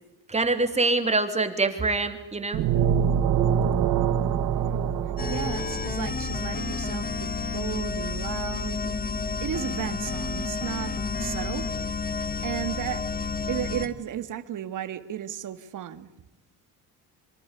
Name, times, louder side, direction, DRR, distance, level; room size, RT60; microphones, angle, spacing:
voice 1, 0.3-2.6, right 3 dB, 15° right, 3.2 m, -25 dB
sound 1, 2.5-6.2, right 8 dB, 70° right, 1.9 m, -25 dB
sound 2, 5.2-13.9, left 4 dB, 20° left, 1.8 m, -30 dB
voice 2, 5.3-9.0 9.4-11.7 12.1-13.0 13.5-16.1, right 10 dB, 50° right, 2.0 m, -34 dB
26.5 x 25.0 x 8.3 m
cardioid pair, 135°, 38 cm